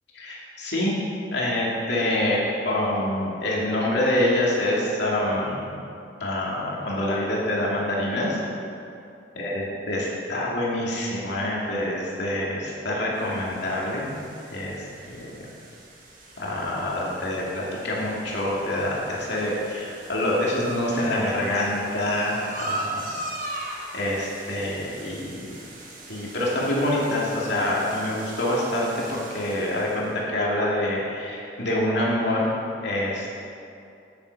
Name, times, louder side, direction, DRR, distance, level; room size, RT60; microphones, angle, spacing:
voice 1, 0.1-1.0 1.3-5.7 6.2-8.4 9.4-14.1 14.5-15.4 16.4-23.0 23.5-23.6 23.9-25.5 26.1-32.5 32.8-33.5, left 1 dB, 70° left, -5 dB, 2.6 m, -26 dB
sound 1, 13.1-30.1, right 1 dB, 50° right, 2.0 m, -40 dB
10.0 x 9.6 x 4.9 m, 2.5 s
head